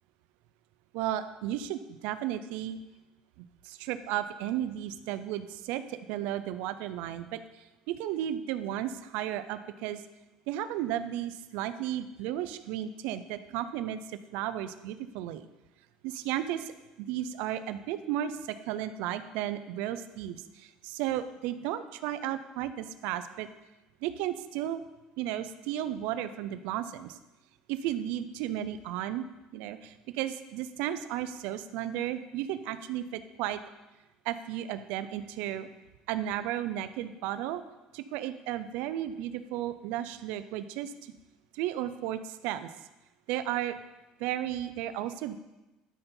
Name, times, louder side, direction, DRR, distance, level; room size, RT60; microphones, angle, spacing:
voice 1, 0.9-2.8 3.4-10.0 10.5-15.5 16.0-16.7 17.0-23.5 24.0-24.8 25.2-27.2 27.7-29.2 29.5-33.6 34.2-35.7 36.1-37.6 37.9-41.1 41.5-42.7 43.3-43.7 44.2-45.4, right 12 dB, 80° right, 12 dB, 0.5 m, -34 dB
12.0 x 5.4 x 4.4 m, 1.1 s
cardioid pair, 135°, 2 cm